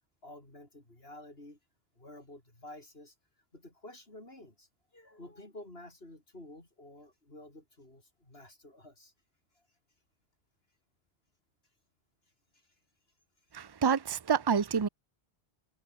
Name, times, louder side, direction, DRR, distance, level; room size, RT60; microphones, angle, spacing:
voice 1, 0.2-1.6 2.0-3.1 3.5-9.1 9.5-9.7 12.5-12.8, left 1 dB, 75° left, 6.0 m, -51 dB
voice 2, 13.5-14.9, right 6 dB, 25° right, 0.7 m, -28 dB
omnidirectional pair, 1.0 m